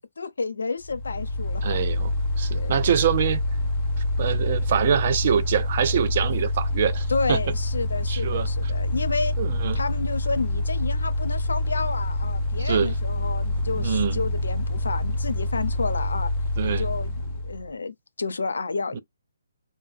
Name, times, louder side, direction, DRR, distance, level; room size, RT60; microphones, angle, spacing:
voice 1, 0.2-1.6 2.5-2.8 7.1-9.3 9.7-16.3 16.6-19.0, left 3 dB, 80° left, 0.6 m, -30 dB
Mechanical fan, 0.8-17.7, left 1 dB, 25° left, 0.6 m, -26 dB
voice 2, 1.6-3.4 4.2-7.4 8.1-8.5 9.4-9.8 12.6-12.9 13.8-14.2 16.6-16.9 18.9-19.0, right 8 dB, 45° right, 0.4 m, -25 dB
2.2 x 2.1 x 3.3 m
hypercardioid pair, 155°, 0 cm